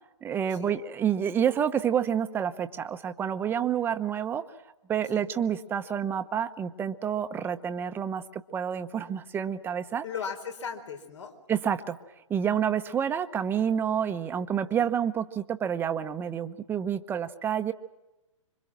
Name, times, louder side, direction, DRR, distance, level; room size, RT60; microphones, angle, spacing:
voice 1, 0.2-4.5 4.9-10.0 11.5-12.0 12.3-17.7, right 8 dB, 15° right, 9 dB, 1.0 m, -28 dB
voice 2, 10.0-11.3 14.8-14.9, left 6 dB, 65° left, 6 dB, 4.4 m, -37 dB
26.5 x 25.0 x 6.2 m, 1.0 s
hypercardioid pair, 135°, 16 cm